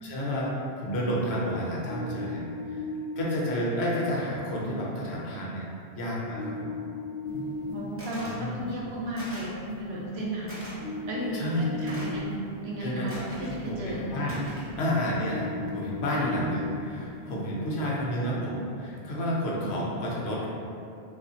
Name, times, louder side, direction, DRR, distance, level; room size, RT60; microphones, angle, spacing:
voice 1, 0.0-2.4 2.7-2.8 3.2-5.6 6.0-6.7 8.2-8.6 11.3-12.0 12.8-13.3 13.7-13.8 14.1-14.4 14.8-20.5, equal, 75° left, -4 dB, 0.9 m, -30 dB
sound 1, 1.8-3.2 6.3-7.7 10.8-12.2 15.3-16.7, left 2 dB, 45° left, 0.7 m, -36 dB
sound 2, 7.2-17.7, equal, 55° right, 0.3 m, -42 dB
voice 2, 7.7-9.5 9.8-10.6 11.1-12.3 12.6-14.1 16.1-16.3, right 1 dB, 75° right, -3 dB, 0.8 m, -34 dB
sound 3, 8.0-8.4 9.2-9.6 10.5-10.7 11.9-12.2 13.1-13.6 14.3-14.7, equal, 15° right, 0.7 m, -41 dB
3.2 x 2.4 x 2.7 m, 2.6 s
omnidirectional pair, 1.1 m